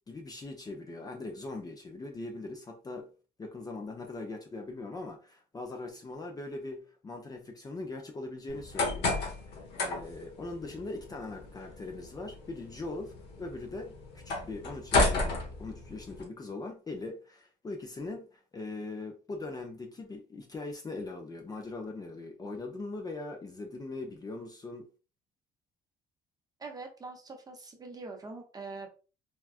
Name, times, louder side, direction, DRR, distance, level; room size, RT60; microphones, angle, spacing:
voice 1, 0.1-3.1 3.4-9.2 9.5-15.3 15.6-24.9, left 2 dB, 20° left, 0.5 m, -41 dB
sound 1, 8.5-16.2, left 2 dB, 80° left, 1.0 m, -33 dB
voice 2, 26.6-28.9, right 3 dB, 20° right, 0.7 m, -43 dB
3.6 x 2.2 x 2.4 m
cardioid pair, 110°, 17 cm